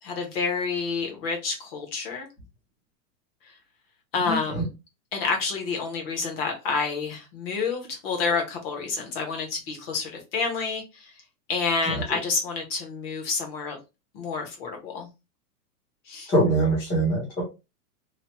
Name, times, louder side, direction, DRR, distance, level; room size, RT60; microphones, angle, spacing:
voice 1, 0.0-2.3 4.1-4.7 5.1-11.1 11.5-13.8 14.1-15.1 16.1-16.3, left 4 dB, 40° left, 1.0 m, -29 dB
voice 2, 4.3-4.6 11.8-12.0 16.3-17.4, right 1 dB, 10° left, 0.6 m, -23 dB
3.1 x 2.3 x 2.9 m
supercardioid pair, 165°, 46 cm